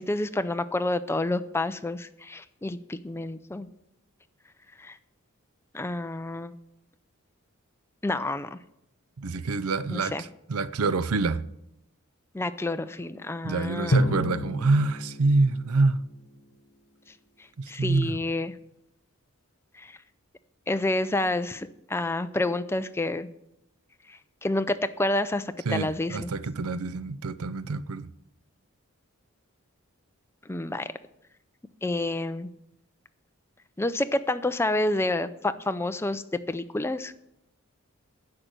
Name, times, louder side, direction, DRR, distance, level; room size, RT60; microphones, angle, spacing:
voice 1, 0.0-3.7 4.8-5.0 5.7-6.5 8.0-8.6 9.9-10.2 12.3-14.0 17.7-18.5 19.8-20.0 20.7-23.3 24.1-26.3 30.5-30.9 31.8-32.5 33.8-37.1, left 2 dB, 10° left, 0.5 m, -29 dB
voice 2, 9.2-11.5 13.4-16.0 17.6-18.2 25.7-28.1, right 3 dB, 85° right, 0.6 m, -26 dB
Drum, 13.9-16.6, left 1 dB, 80° left, 1.1 m, -29 dB
10.5 x 6.6 x 9.0 m
head